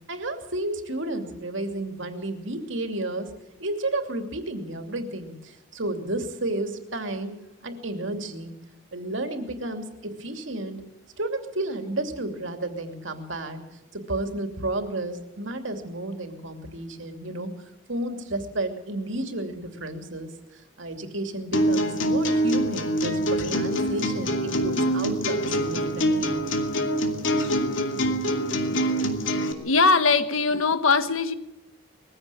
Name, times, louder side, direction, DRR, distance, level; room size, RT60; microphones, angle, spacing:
voice 1, 0.1-3.3 3.6-8.5 8.9-10.8 11.2-13.6 13.9-17.5 17.9-26.5, right 1 dB, 65° right, 2.9 m, -32 dB
sound 1, 21.5-29.5, equal, 65° left, 2.6 m, -25 dB
voice 2, 29.6-31.3, left 4 dB, 90° left, 1.5 m, -21 dB
21.5 x 15.5 x 8.6 m
head